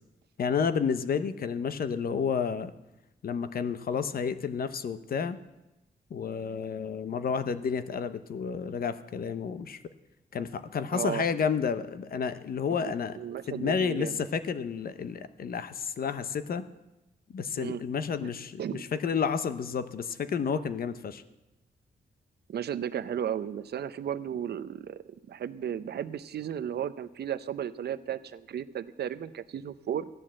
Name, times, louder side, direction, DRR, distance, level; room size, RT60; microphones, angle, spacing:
voice 1, 0.4-2.7 3.2-5.4 6.1-9.8 10.3-13.2 13.5-16.7 17.3-21.2, left 6 dB, 60° left, 12 dB, 0.8 m, -31 dB
voice 2, 10.9-11.2 12.7-14.3 17.6-17.8 18.2-18.3 18.6-18.8 22.5-30.1, right 9 dB, 70° right, 13 dB, 0.7 m, -34 dB
15.0 x 10.5 x 7.5 m, 0.99 s
wide cardioid pair, 160°, 17 cm